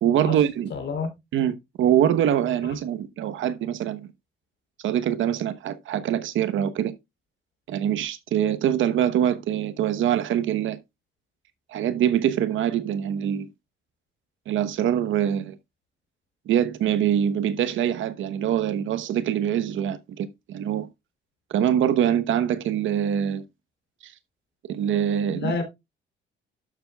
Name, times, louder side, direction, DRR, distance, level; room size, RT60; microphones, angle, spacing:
voice 1, 0.0-0.7 1.3-4.1 4.8-6.9 7.7-10.8 11.7-13.5 14.5-15.6 16.5-20.9 21.5-23.4 24.0-24.1 24.7-25.6, right 10 dB, 75° right, 1.0 m, -24 dB
voice 2, 0.7-1.1 25.4-25.6, left 4 dB, 60° left, 3.4 m, -28 dB
12.0 x 7.0 x 2.3 m
cardioid pair, 90°, 20 cm